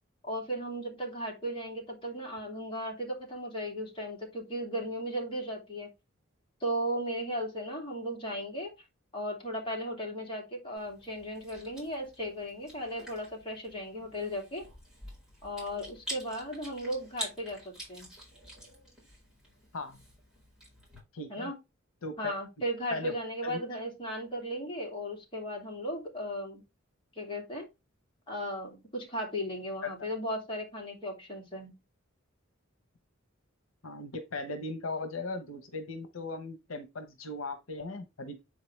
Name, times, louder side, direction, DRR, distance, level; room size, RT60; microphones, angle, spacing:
voice 1, 0.2-5.9 6.6-8.7 9.1-14.6 15.4-18.1 21.3-21.5 22.2-26.6 27.2-27.7 28.3-31.8, equal, 25° left, 2.7 m, -36 dB
Chewing mastication, 10.8-21.0, equal, 5° right, 4.5 m, -47 dB
voice 2, 21.1-21.5 22.0-22.3 22.9-23.1 23.4-23.6 29.8-29.9 33.8-38.4, left 3 dB, 80° left, 1.0 m, -38 dB
7.7 x 4.7 x 3.3 m
head